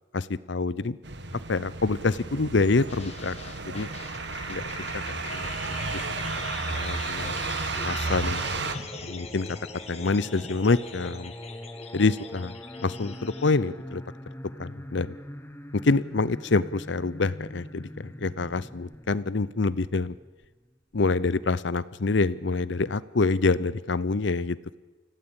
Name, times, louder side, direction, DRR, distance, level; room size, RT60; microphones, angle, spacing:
voice 1, 0.1-1.0 1.5-3.3 3.6-3.9 4.5-4.7 4.9-5.5 5.9-6.0 6.7-7.3 7.8-8.5 9.0-9.5 9.9-11.3 11.9-12.5 12.8-14.0 14.6-15.1 15.7-20.1 20.9-24.8, left 3 dB, 65° left, 18 dB, 0.7 m, -26 dB
sound 1, 1.0-8.7, right 4 dB, 60° right, 1.7 m, -33 dB
sound 2, 2.9-13.5, left 4 dB, 30° left, 1.9 m, -42 dB
Singing, 6.2-21.0, left 1 dB, 10° left, 1.0 m, -44 dB
26.0 x 16.5 x 8.9 m, 1.2 s
head